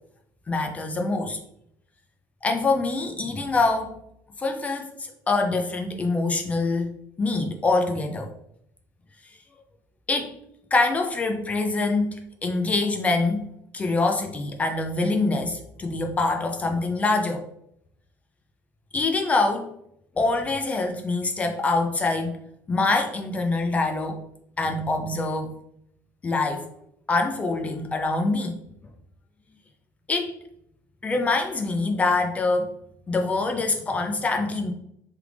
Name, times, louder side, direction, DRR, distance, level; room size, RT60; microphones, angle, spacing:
voice 1, 0.5-1.4 2.4-4.0 4.4-8.3 10.1-10.3 10.7-13.4 13.7-17.4 18.9-19.7 20.2-22.4 22.7-24.2 24.6-25.5 26.2-26.6 27.1-28.6 30.1-30.3 31.0-32.7 33.1-34.7, left 3 dB, 20° left, 4 dB, 0.3 m, -25 dB
3.2 x 2.4 x 3.3 m, 0.75 s
cardioid pair, 140°, 7 cm